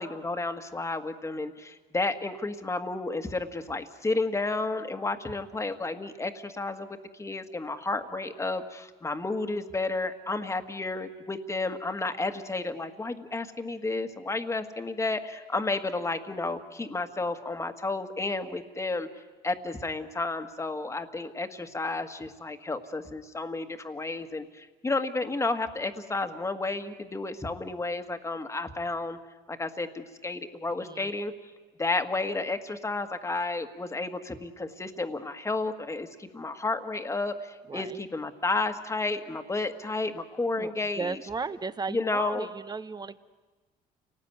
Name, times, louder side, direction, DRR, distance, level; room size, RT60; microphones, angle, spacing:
voice 1, 0.0-19.1 19.4-29.2 29.5-31.3 31.8-41.2 41.9-42.5, left 3 dB, 15° left, 8 dB, 1.7 m, -32 dB
voice 2, 30.8-31.1 37.7-38.0 40.6-40.7 41.0-43.2, right 4 dB, 25° right, 14 dB, 1.0 m, -35 dB
29.5 x 19.0 x 9.5 m, 1.3 s
cardioid pair, 110°, 17 cm